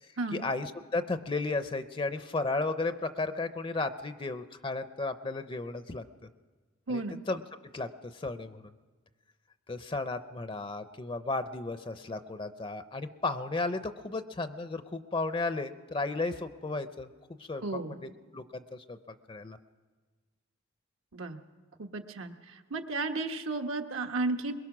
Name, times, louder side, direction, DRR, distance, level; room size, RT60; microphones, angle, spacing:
voice 1, 0.0-6.0 6.9-7.4 7.7-8.7 9.7-17.1 17.4-19.0 19.3-19.6, left 3 dB, 25° left, 10 dB, 0.6 m, -34 dB
voice 2, 6.9-7.2 17.6-18.0 21.1-21.4 21.8-22.3 22.7-24.5, right 3 dB, 80° right, 5 dB, 1.2 m, -33 dB
22.0 x 22.0 x 6.1 m, 1.4 s
head